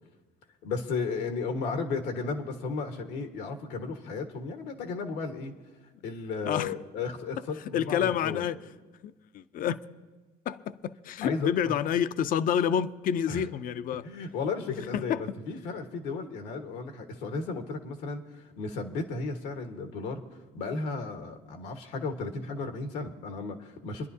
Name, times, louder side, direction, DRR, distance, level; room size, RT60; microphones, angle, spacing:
voice 1, 0.6-5.5 6.0-8.4 11.2-11.7 13.3-13.4 14.0-20.2 20.5-24.1, left 4 dB, 90° left, 1.5 m, -34 dB
voice 2, 7.7-8.6 9.0-9.8 10.5-14.1 14.9-15.2, left 9 dB, 55° left, 0.5 m, -28 dB
28.0 x 11.0 x 2.7 m
cardioid pair, 110°, 17 cm